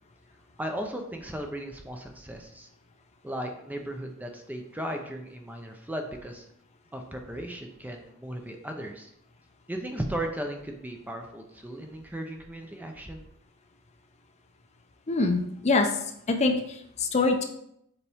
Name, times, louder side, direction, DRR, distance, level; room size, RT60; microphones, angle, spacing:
voice 1, 0.6-2.7 3.2-6.5 6.9-9.1 9.7-13.2, right 1 dB, 10° right, 3 dB, 0.6 m, -36 dB
voice 2, 15.1-15.9 16.3-17.4, left 3 dB, 30° left, 5 dB, 0.6 m, -24 dB
7.1 x 4.1 x 3.5 m, 0.74 s
head